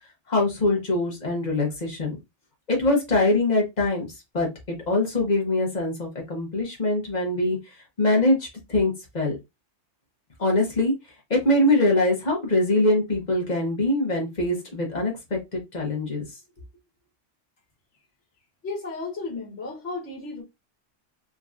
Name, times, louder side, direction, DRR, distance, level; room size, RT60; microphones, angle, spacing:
voice 1, 0.3-2.2 2.7-4.1 4.3-7.6 8.0-9.4 10.4-10.9 11.3-16.2, left 2 dB, 35° left, 1.2 m, -23 dB
voice 2, 18.6-20.4, left 3 dB, 60° left, 1.5 m, -33 dB
3.7 x 2.9 x 2.4 m
omnidirectional pair, 1.3 m